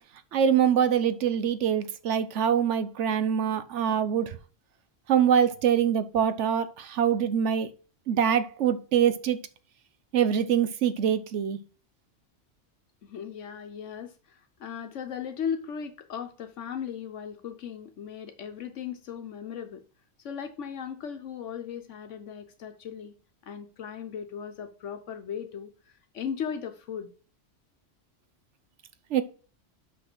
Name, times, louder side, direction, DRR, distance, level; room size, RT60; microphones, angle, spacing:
voice 1, 0.3-4.4 5.1-7.7 8.1-9.4 10.1-11.6 29.1-29.2, right 8 dB, 75° right, 1.1 m, -24 dB
voice 2, 13.0-14.1 14.6-19.8 20.2-23.1 23.4-25.7 26.1-27.1, left 7 dB, 80° left, 1.2 m, -37 dB
6.2 x 5.8 x 5.9 m
omnidirectional pair, 1.3 m